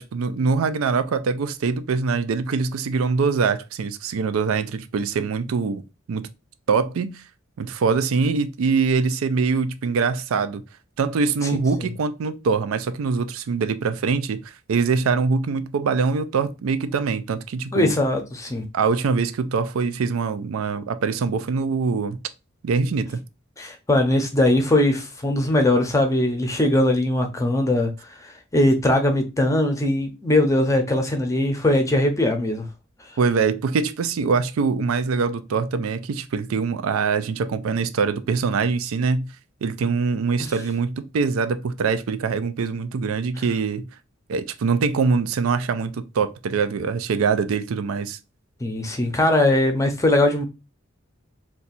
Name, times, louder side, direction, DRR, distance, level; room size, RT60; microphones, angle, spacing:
voice 1, 0.0-5.8 6.1-6.3 6.7-7.2 7.6-10.6 11.0-14.4 14.7-17.9 18.7-22.2 22.6-23.2 33.2-39.3 39.6-43.9 44.3-48.2, right 5 dB, 85° right, 0.4 m, -23 dB
voice 2, 17.7-18.6 23.6-27.9 28.5-32.7 40.4-40.5 48.6-50.4, left 1 dB, 15° left, 0.6 m, -20 dB
2.7 x 2.3 x 4.0 m
head